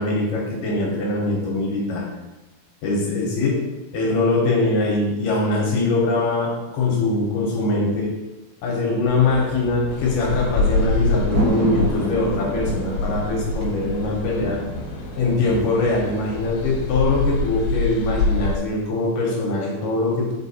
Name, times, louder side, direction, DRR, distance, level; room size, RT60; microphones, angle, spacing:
voice 1, 0.0-2.1 2.8-3.6 3.9-8.1 8.6-14.6 15.2-20.3, left 2 dB, 70° left, -2 dB, 2.4 m, -22 dB
sound 1, 9.1-16.5, right 1 dB, 75° right, 3.4 m, -30 dB
sound 2, 9.9-18.6, left 3 dB, 90° left, 2.6 m, -26 dB
5.2 x 5.1 x 4.1 m, 1.1 s
omnidirectional pair, 4.4 m